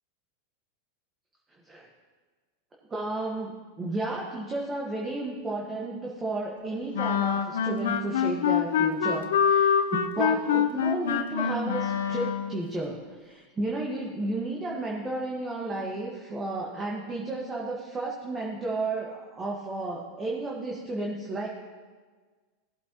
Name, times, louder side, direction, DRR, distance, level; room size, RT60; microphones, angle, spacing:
voice 1, 2.9-21.5, right 2 dB, 20° right, -3 dB, 1.7 m, -33 dB
sound 1, 6.9-12.6, left 7 dB, 80° left, 0.7 m, -25 dB
17.5 x 8.0 x 3.1 m, 1.5 s
hypercardioid pair, 110°, 0 cm